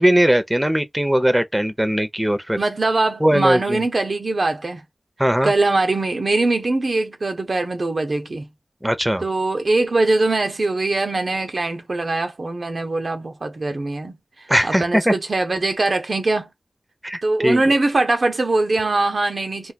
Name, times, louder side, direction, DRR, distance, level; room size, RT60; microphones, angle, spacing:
voice 1, 0.0-2.6 3.2-3.8 5.2-5.5 8.8-9.2 14.5-15.1 17.0-17.6, equal, 10° right, 0.7 m, -19 dB
voice 2, 2.6-4.8 5.4-8.5 9.2-14.2 14.6-16.5 17.2-19.7, right 2 dB, 70° right, 0.7 m, -22 dB
2.5 x 2.3 x 4.1 m
cardioid pair, 45°, 0 cm